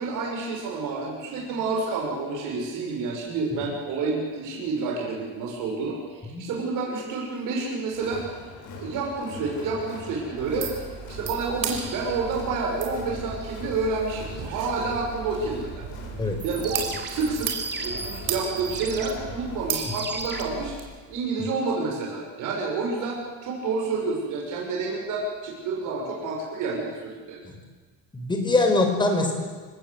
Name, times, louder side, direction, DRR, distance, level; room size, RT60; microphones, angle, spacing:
voice 1, 0.0-8.2 8.8-10.7 11.1-15.8 16.4-17.5 17.8-20.8 21.1-27.4, right 3 dB, 70° right, -1 dB, 6.3 m, -29 dB
Crowd, 7.9-19.7, left 3 dB, 65° left, 7.6 m, -42 dB
sound 1, 10.4-20.8, right 7 dB, 85° right, 5.0 m, -35 dB
sound 2, 16.2-21.2, right 6 dB, 30° right, 2.8 m, -39 dB
voice 2, 28.1-29.3, left 2 dB, 15° left, 3 dB, 4.7 m, -22 dB
29.5 x 18.0 x 8.1 m, 1.5 s
cardioid pair, 160°, 33 cm